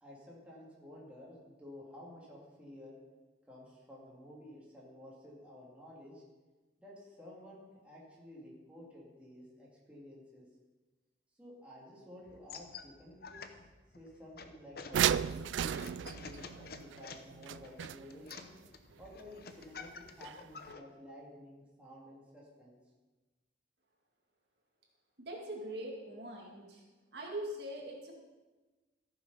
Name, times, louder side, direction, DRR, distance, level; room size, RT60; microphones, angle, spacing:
voice 1, 0.0-3.0 3.5-6.2 6.8-10.4 11.4-13.6 13.9-18.5 19.0-22.8, left 1 dB, 5° right, -6 dB, 2.6 m, -52 dB
sound 1, 12.3-20.8, left 5 dB, 55° left, 0.8 m, -50 dB
sound 2, 14.9-18.4 20.2-20.3 20.7-20.8, right 9 dB, 80° right, 0.3 m, -34 dB
voice 2, 25.2-26.8 27.1-28.1, right 1 dB, 60° right, -1 dB, 2.2 m, -42 dB
14.5 x 7.0 x 5.6 m, 1.2 s
head